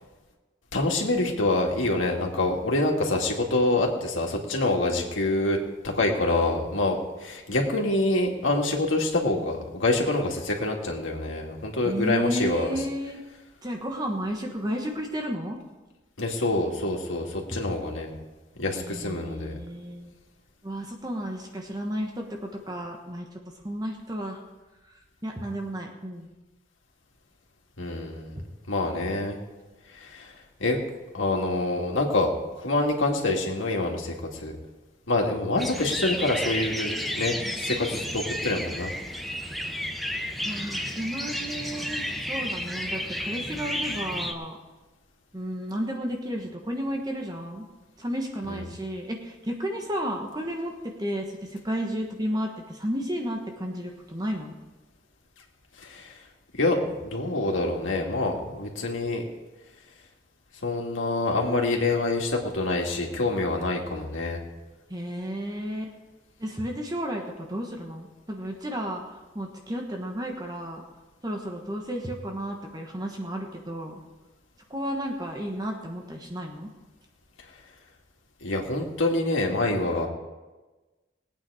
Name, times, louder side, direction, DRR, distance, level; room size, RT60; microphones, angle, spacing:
voice 1, 0.7-5.6 5.8-12.7 16.2-18.1 18.6-19.5 27.8-28.3 28.7-29.4 29.9-30.3 30.6-30.8 31.1-34.5 35.1-38.9 48.5-48.7 55.8-56.2 56.5-59.2 60.6-64.4 78.4-80.1, left 2 dB, 85° left, 0 dB, 2.2 m, -26 dB
voice 2, 11.8-13.2 13.6-15.6 17.5-17.6 18.7-20.1 20.6-23.3 23.6-24.4 24.8-26.3 28.4-28.5 40.4-44.6 45.3-47.7 48.0-54.6 64.9-66.0 66.4-69.0 69.3-70.8 71.2-74.0 74.7-76.7, equal, 20° right, 2 dB, 1.2 m, -32 dB
sound 1, 35.6-44.3, equal, ahead, 0.8 m, -32 dB
19.5 x 8.8 x 4.9 m, 1.2 s
head